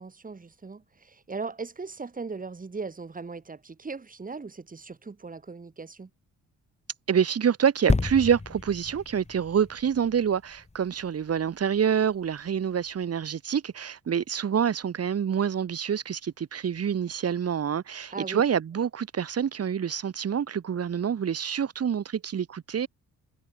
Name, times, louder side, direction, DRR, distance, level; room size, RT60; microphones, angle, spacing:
voice 1, 0.0-6.1 18.1-18.4, right 4 dB, 25° right, 5.8 m, -38 dB
voice 2, 7.1-22.9, right 8 dB, 55° right, 6.6 m, -27 dB
sound 1, 7.9-11.5 12.1-12.2, left 3 dB, 20° left, 7.6 m, -31 dB
cardioid pair, 90°, 30 cm